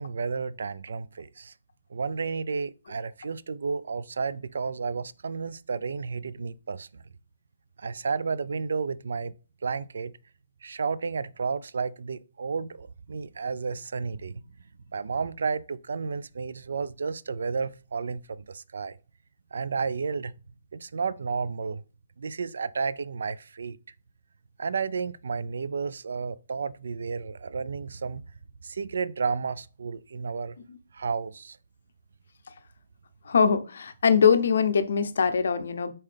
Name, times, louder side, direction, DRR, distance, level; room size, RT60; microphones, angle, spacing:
voice 1, 0.0-1.5 1.9-7.0 7.8-9.3 9.6-10.1 10.6-14.4 14.9-19.0 19.5-20.3 20.7-21.8 22.2-23.8 24.6-28.2 28.6-30.6 30.9-31.6, right 5 dB, 75° right, 0.3 m, -32 dB
voice 2, 33.2-35.9, left 6 dB, 70° left, 0.5 m, -22 dB
4.1 x 3.8 x 3.3 m
hypercardioid pair, 160°, 0 cm